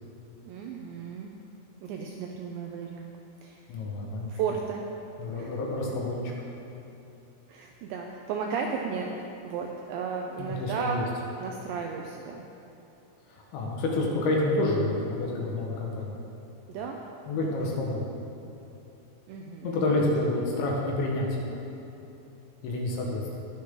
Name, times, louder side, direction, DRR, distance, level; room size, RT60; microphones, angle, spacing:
voice 1, 0.4-1.4 1.8-3.1 3.4-3.6 4.3-4.8 5.3-5.6 7.5-12.5 16.7-17.0 17.3-17.5 19.3-20.0, right 5 dB, 85° right, 1 dB, 2.6 m, -34 dB
voice 2, 3.7-4.3 5.2-6.3 10.4-11.0 13.3-16.1 17.3-18.0 19.6-21.5 22.6-23.4, left 2 dB, 70° left, -2 dB, 3.6 m, -28 dB
21.0 x 7.1 x 3.8 m, 2.9 s
omnidirectional pair, 5.7 m